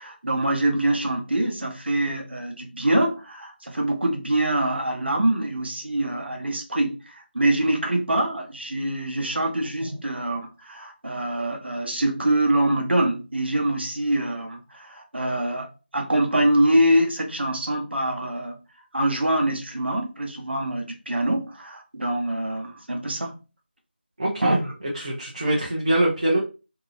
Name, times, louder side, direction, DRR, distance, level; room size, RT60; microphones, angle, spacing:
voice 1, 0.0-18.6 18.9-23.3 24.4-24.6, right 1 dB, 65° right, 0.8 m, -24 dB
voice 2, 24.2-26.4, right 1 dB, 35° right, 0.6 m, -24 dB
2.7 x 2.1 x 2.6 m
figure-of-eight pair, 170°, 6 cm